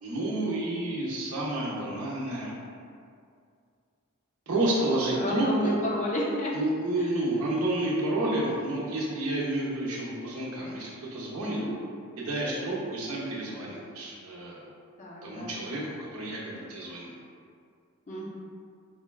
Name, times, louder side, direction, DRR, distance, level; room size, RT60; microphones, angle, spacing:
voice 1, 0.0-2.5 4.5-5.8 6.5-11.6 12.2-14.6 15.2-17.1, right 1 dB, 70° right, -4 dB, 0.6 m, -30 dB
voice 2, 5.1-6.6 7.0-7.1 11.4-11.8 15.0-15.6 18.1-18.3, left 1 dB, 35° left, -3 dB, 0.4 m, -31 dB
3.8 x 2.3 x 2.2 m, 2.3 s
head